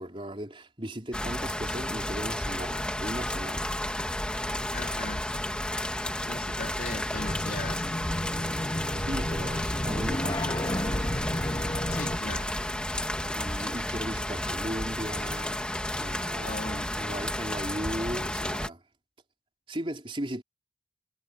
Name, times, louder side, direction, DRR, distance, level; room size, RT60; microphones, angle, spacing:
voice 1, 0.0-3.7 9.0-11.0 13.3-15.6 16.0-18.8 19.7-20.4, right 1 dB, 30° right, 3.8 m, -37 dB
sound 1, 1.1-18.7, left 1 dB, 5° left, 2.9 m, -32 dB
voice 2, 4.7-5.3 6.2-8.0 11.9-12.5 16.4-17.0, left 3 dB, 55° left, 3.2 m, -39 dB
sound 2, 7.1-12.2, left 1 dB, 25° left, 2.5 m, -32 dB
head